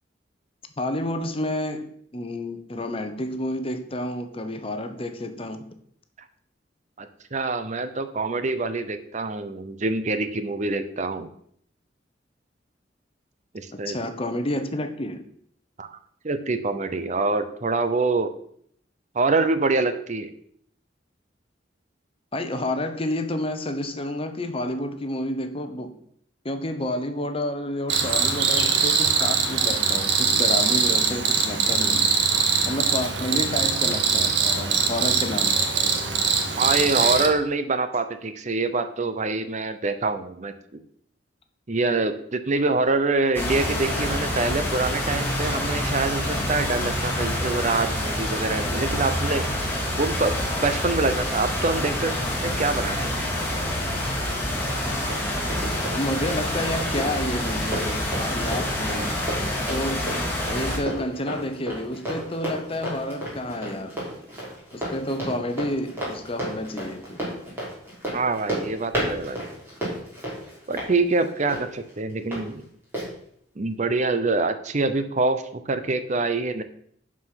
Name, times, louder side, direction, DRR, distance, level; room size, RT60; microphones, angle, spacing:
voice 1, 0.8-5.7 13.7-15.2 22.3-25.9 26.4-32.1 32.7-35.5 35.8-35.9 55.9-59.2 59.6-60.1 60.5-63.9 64.7-67.2, left 1 dB, 30° left, 1.0 m, -30 dB
voice 2, 7.0-11.3 13.5-14.0 15.8-15.9 16.2-18.3 19.1-20.3 36.6-40.5 41.7-49.5 50.0-52.1 52.4-53.2 68.1-69.4 70.7-72.6 73.6-76.6, right 3 dB, 40° right, 0.7 m, -25 dB
Cricket, 27.9-37.3, right 5 dB, 70° right, 1.4 m, -22 dB
sound 1, 43.3-60.8, left 1 dB, 10° left, 2.6 m, -27 dB
Run, 54.6-72.4 72.9-73.1, right 1 dB, 15° right, 3.9 m, -33 dB
11.5 x 5.0 x 5.8 m
head